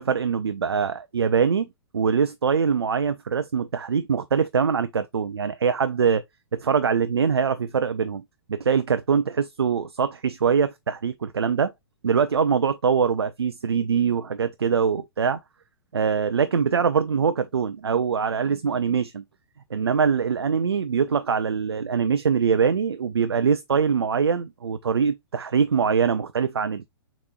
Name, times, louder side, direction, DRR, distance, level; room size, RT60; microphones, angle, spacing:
voice 1, 0.0-1.7 1.9-6.2 6.5-8.2 8.5-11.7 12.0-15.4 15.9-19.2 19.7-26.9, right 6 dB, 75° right, 0.4 m, -23 dB
6.5 x 3.0 x 2.3 m
figure-of-eight pair, 115°, 13 cm